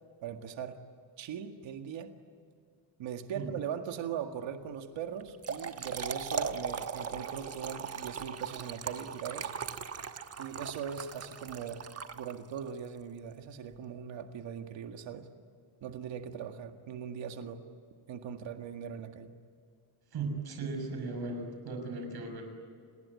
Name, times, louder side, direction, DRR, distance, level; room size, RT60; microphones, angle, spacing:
voice 1, 0.2-0.8 1.2-2.1 3.0-9.5 10.4-11.9 12.1-15.3 15.8-17.7 18.1-19.3, right 8 dB, 75° right, 6 dB, 2.0 m, -40 dB
Trickle dribble / Fill (with liquid), 5.2-12.7, right 6 dB, 35° right, 1.2 m, -38 dB
voice 2, 20.1-22.4, right 3 dB, 55° right, 5 dB, 6.3 m, -37 dB
29.0 x 20.5 x 9.6 m, 2.1 s
cardioid pair, 180°, 46 cm